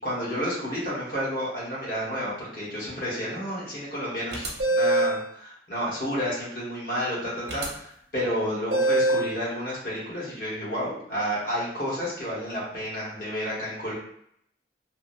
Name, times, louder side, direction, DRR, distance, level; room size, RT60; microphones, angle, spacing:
voice 1, 0.0-7.8 8.1-13.9, equal, 50° left, -7 dB, 1.2 m, -30 dB
sound 1, 4.3-5.2 7.5-7.7 8.7-9.3, right 1 dB, 70° right, 0.7 m, -23 dB
3.0 x 2.1 x 2.6 m, 0.70 s
head